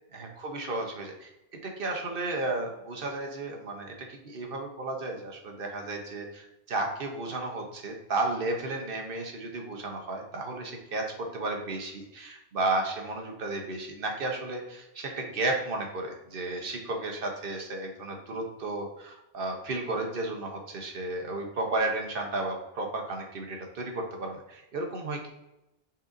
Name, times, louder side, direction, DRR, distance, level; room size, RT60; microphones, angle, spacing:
voice 1, 0.1-1.3 1.6-25.3, right 2 dB, 60° right, 2 dB, 1.0 m, -33 dB
5.5 x 3.8 x 2.5 m, 0.91 s
omnidirectional pair, 1.1 m